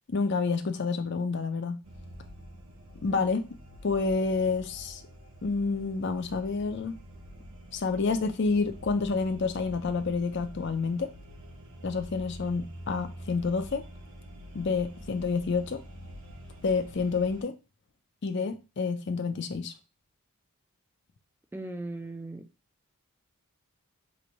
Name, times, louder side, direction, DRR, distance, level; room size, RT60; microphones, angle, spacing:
voice 1, 0.1-1.8 3.0-3.4 3.8-5.0 5.4-6.9 7.7-11.1 11.8-13.8 14.5-15.8 16.6-17.5 18.2-19.7, left 4 dB, 50° left, 0.5 m, -28 dB
sound 1, 1.8-17.4, equal, 65° right, 0.9 m, -46 dB
voice 2, 21.5-22.5, right 2 dB, 10° right, 0.4 m, -38 dB
3.1 x 2.2 x 3.9 m
head